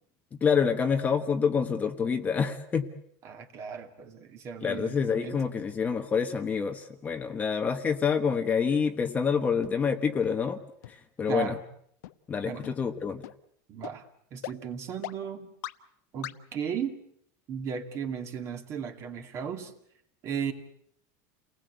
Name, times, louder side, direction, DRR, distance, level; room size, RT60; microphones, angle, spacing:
voice 1, 0.4-2.9 4.6-10.6 10.9-11.6 12.3-13.2, left 6 dB, 15° left, 5 dB, 1.2 m, -27 dB
voice 2, 3.2-5.4 11.3-11.6 12.5-12.6 13.7-14.0 14.3-15.5 16.1-17.0 17.5-19.7 20.2-20.5, right 7 dB, 30° right, 6 dB, 2.4 m, -35 dB
sound 1, 9.6-9.7 10.2-10.3 10.8-10.9 11.4-11.5 12.0-12.1 12.6-12.7 13.2-13.3 13.8-13.9 14.4-14.5 15.0-15.1 15.6-15.7 16.2-16.3, left 16 dB, 85° left, 1.2 m, -38 dB
29.5 x 19.5 x 8.1 m, 0.71 s
supercardioid pair, 170°, 9 cm